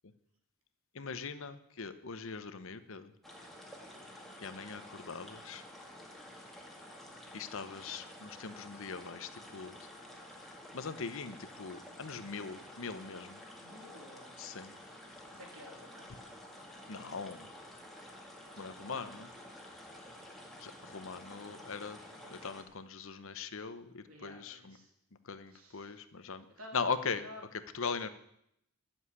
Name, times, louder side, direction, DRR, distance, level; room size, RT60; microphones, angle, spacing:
voice 1, 0.9-3.1 4.4-5.6 7.3-9.8 10.7-13.4 14.4-14.7 16.9-17.5 18.6-19.3 20.6-22.0 22.3-24.8 25.2-26.4 26.7-27.2 27.7-28.1, left 5 dB, 65° left, 12 dB, 0.9 m, -40 dB
sound 1, 3.2-22.6, left 1 dB, ahead, 2.0 m, -51 dB
voice 2, 3.9-4.3 13.6-14.4 15.3-16.3 18.5-19.6 22.1-22.4 24.0-24.9 25.5-26.0 26.6-26.8 27.2-27.4, left 1 dB, 85° right, 1 dB, 3.5 m, -54 dB
11.5 x 7.3 x 9.6 m, 0.76 s
head